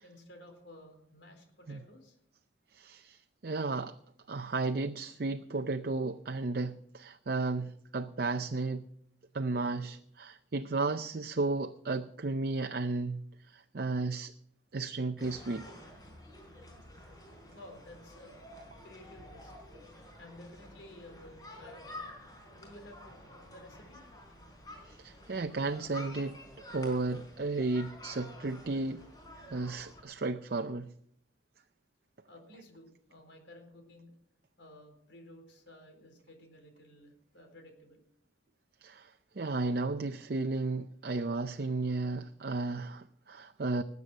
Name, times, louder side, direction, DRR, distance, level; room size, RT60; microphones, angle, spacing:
voice 1, 0.0-2.2 17.5-18.4 18.8-19.5 20.2-22.1 22.5-24.0 32.3-34.1 34.6-38.1, left 1 dB, 80° left, 4.3 m, -54 dB
voice 2, 2.7-4.0 4.3-8.9 9.3-14.3 14.7-15.7 24.9-26.4 26.7-29.0 29.5-30.9 38.8-43.8, right 3 dB, 55° right, 0.6 m, -34 dB
sound 1, 15.2-30.0, left 1 dB, 20° left, 4.3 m, -50 dB
19.5 x 8.3 x 6.1 m
head